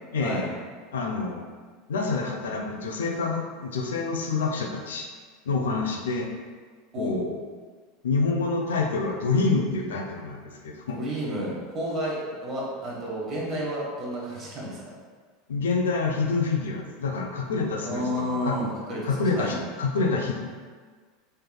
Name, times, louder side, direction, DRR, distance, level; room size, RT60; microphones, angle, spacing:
voice 1, 0.1-0.5 0.9-1.5 1.9-5.1 5.5-6.3 7.0-7.4 8.0-11.0 15.5-18.1 18.4-18.6 19.0-20.4, left 4 dB, 90° left, 1 dB, 0.4 m, -27 dB
voice 2, 10.9-14.9 17.8-19.0 19.3-19.6, equal, 40° right, -5 dB, 1.2 m, -31 dB
3.2 x 3.1 x 2.2 m, 1.6 s
hypercardioid pair, 100°, 0 cm